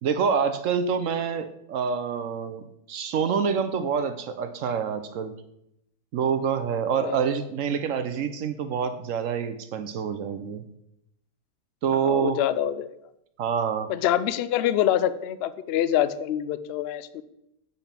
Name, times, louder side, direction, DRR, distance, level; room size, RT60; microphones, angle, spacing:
voice 1, 0.0-5.3 6.1-10.6 11.8-12.4 13.4-13.9, right 6 dB, 65° right, 10 dB, 0.9 m, -27 dB
voice 2, 12.0-12.9 13.9-17.2, left 11 dB, 85° left, 14 dB, 0.5 m, -25 dB
7.2 x 5.3 x 5.8 m, 0.81 s
omnidirectional pair, 1.6 m